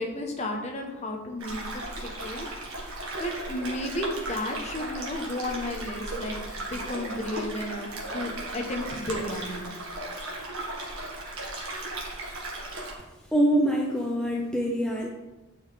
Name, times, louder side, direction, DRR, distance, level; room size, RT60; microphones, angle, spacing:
voice 1, 0.0-2.8 3.2-9.7, left 1 dB, 30° left, 3 dB, 0.9 m, -33 dB
sound 1, 1.4-12.9, right 1 dB, 75° right, 1.5 m, -36 dB
voice 2, 13.3-15.1, right 1 dB, 5° left, -1 dB, 0.5 m, -24 dB
8.9 x 4.9 x 3.3 m, 1.1 s
head